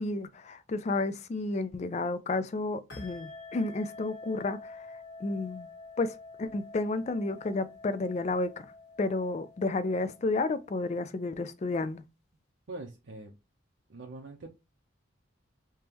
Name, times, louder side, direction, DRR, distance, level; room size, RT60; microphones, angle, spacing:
voice 1, 0.0-4.9 5.2-5.7 6.0-8.7 9.0-12.0, left 3 dB, 35° left, 0.3 m, -31 dB
sound 1, 2.9-11.0, left 3 dB, 60° left, 1.6 m, -48 dB
voice 2, 12.7-13.3 13.9-14.5, right 2 dB, 75° right, 0.6 m, -43 dB
3.5 x 2.9 x 2.9 m
head